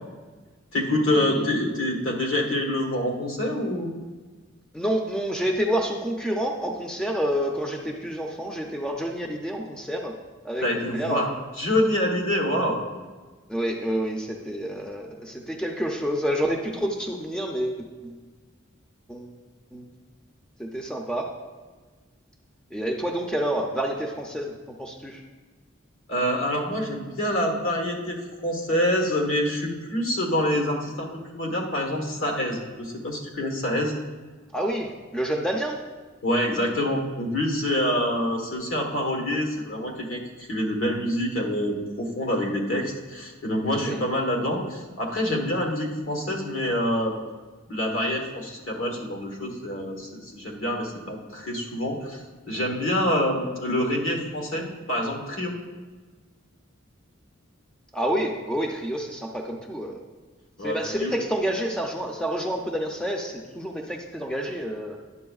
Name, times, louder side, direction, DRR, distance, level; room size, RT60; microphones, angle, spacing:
voice 1, 0.7-3.9 10.6-11.3 11.6-12.8 26.1-28.2 28.4-34.0 36.2-47.1 47.7-55.5 60.6-61.1, left 1 dB, 75° left, 1 dB, 1.3 m, -26 dB
voice 2, 4.7-10.1 10.4-11.2 13.5-18.2 19.1-19.3 19.7-19.9 20.6-21.3 22.7-25.2 34.5-35.8 43.6-44.0 57.9-60.0 60.6-65.0, equal, 5° left, 1 dB, 0.4 m, -28 dB
10.5 x 7.1 x 2.3 m, 1.4 s
head